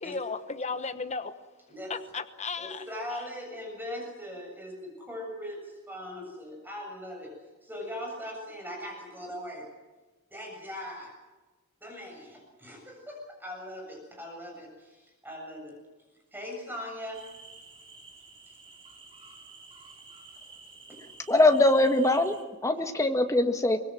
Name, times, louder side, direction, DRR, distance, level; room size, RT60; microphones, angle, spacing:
voice 1, 0.0-1.3 1.9-2.8, left 4 dB, 30° left, 8 dB, 1.1 m, -34 dB
voice 2, 2.6-7.3 7.6-9.7 10.3-11.1 11.8-15.8 16.3-17.2 20.9-21.0, left 1 dB, 10° right, 1 dB, 7.5 m, -40 dB
Jungle in Maharashtra at night, 17.1-22.4, right 3 dB, 25° right, 4.1 m, -51 dB
voice 3, 21.3-22.3 22.6-23.8, left 2 dB, 15° left, 6 dB, 1.7 m, -22 dB
24.5 x 21.5 x 7.7 m, 1.2 s
head